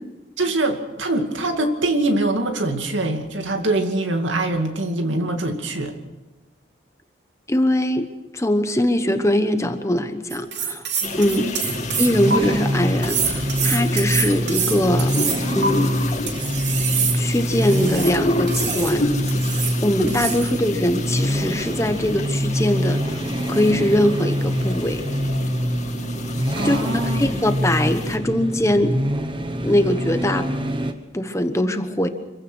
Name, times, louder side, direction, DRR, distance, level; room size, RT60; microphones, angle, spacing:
voice 1, 0.4-5.9 11.3-11.6 26.6-27.3, right 2 dB, 80° right, 5 dB, 2.4 m, -23 dB
voice 2, 7.5-8.1 8.3-10.8 11.2-11.5 12.0-15.1 15.5-16.0 17.1-19.1 19.8-23.2 23.5-25.0 26.6-26.8 27.0-29.0 29.6-30.5 31.1-32.1, left 1 dB, 15° left, 8 dB, 1.1 m, -21 dB
sound 1, 10.3-12.4 13.0-15.7 16.3-18.1 18.5-18.9 19.3-19.8 20.1-20.5, right 6 dB, 65° right, 3.0 m, -26 dB
sound 2, 11.0-28.2, left 2 dB, 35° left, 2.2 m, -30 dB
sound 3, 11.6-30.9, equal, 25° right, 1.2 m, -25 dB
26.0 x 16.0 x 6.3 m, 1.1 s
head